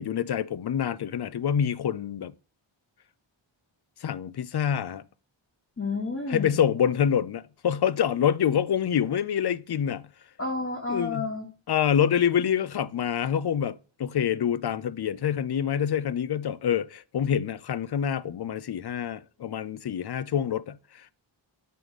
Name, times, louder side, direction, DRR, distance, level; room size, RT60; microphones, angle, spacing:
voice 1, 0.0-2.3 4.0-5.0 6.3-10.0 10.9-11.3 11.7-21.1, left 8 dB, 55° left, 0.6 m, -26 dB
voice 2, 5.8-6.6 10.4-11.5, left 3 dB, 30° left, 1.4 m, -30 dB
9.1 x 3.3 x 6.3 m
wide cardioid pair, 95°, 48 cm